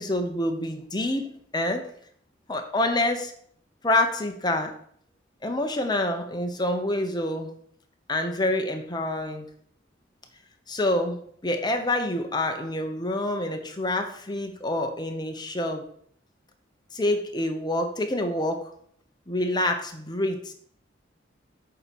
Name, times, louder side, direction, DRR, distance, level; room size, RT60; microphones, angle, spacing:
voice 1, 0.0-1.9 2.5-3.3 3.8-4.8 5.4-7.5 8.1-9.5 10.7-15.9 16.9-18.7 19.3-20.5, left 1 dB, 20° left, 5 dB, 1.0 m, -27 dB
8.8 x 4.5 x 7.1 m, 0.62 s
head